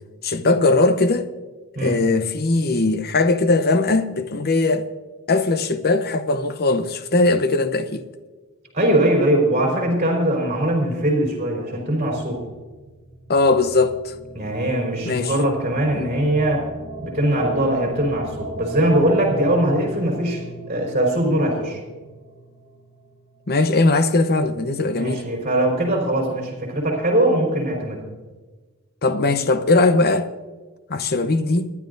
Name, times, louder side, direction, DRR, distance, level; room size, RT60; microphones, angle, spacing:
voice 1, 0.2-1.3 1.8-4.9 5.3-8.0 13.3-14.1 15.0-15.3 15.9-16.1 23.5-25.2 29.0-30.3 30.9-31.7, left 3 dB, 45° left, 0.8 m, -19 dB
voice 2, 8.7-12.4 14.3-16.6 17.0-20.4 20.7-21.8 24.9-28.0 29.2-29.4, right 1 dB, 30° right, 4.1 m, -21 dB
sound 1, 12.1-24.0, right 2 dB, 90° left, 2.1 m, -37 dB
26.5 x 11.0 x 2.6 m
head